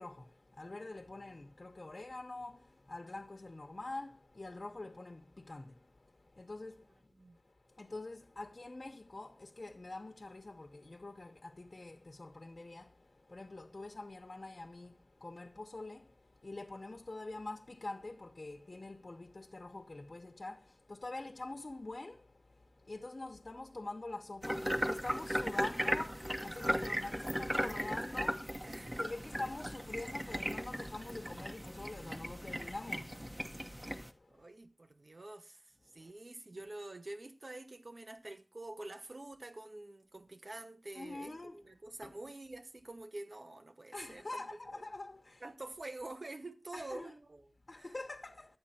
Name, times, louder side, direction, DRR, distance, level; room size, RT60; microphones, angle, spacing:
voice 1, 0.0-7.1 7.4-34.4 36.0-36.1 36.5-36.6 40.9-41.6 42.0-42.1 43.9-45.4 46.7-47.1 47.7-48.6, left 2 dB, 80° left, 0.8 m, -46 dB
sound 1, 24.4-34.1, equal, 20° right, 1.2 m, -37 dB
voice 2, 28.7-29.1 34.3-35.6 35.9-44.8 45.4-48.0, right 2 dB, 90° right, 1.0 m, -47 dB
12.0 x 8.8 x 4.2 m
wide cardioid pair, 45°, 0 cm